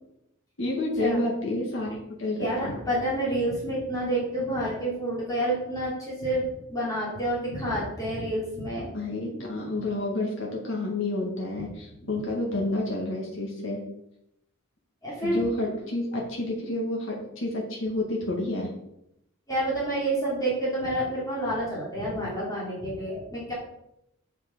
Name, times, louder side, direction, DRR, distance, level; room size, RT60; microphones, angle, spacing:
voice 1, 0.6-2.8 8.9-13.8 15.2-18.7, left 2 dB, 65° left, -2 dB, 2.1 m, -29 dB
voice 2, 2.4-8.9 9.3-9.4 12.0-12.1 15.0-15.4 19.5-23.5, right 1 dB, 20° left, -7 dB, 3.2 m, -29 dB
7.5 x 6.1 x 5.6 m, 0.80 s
head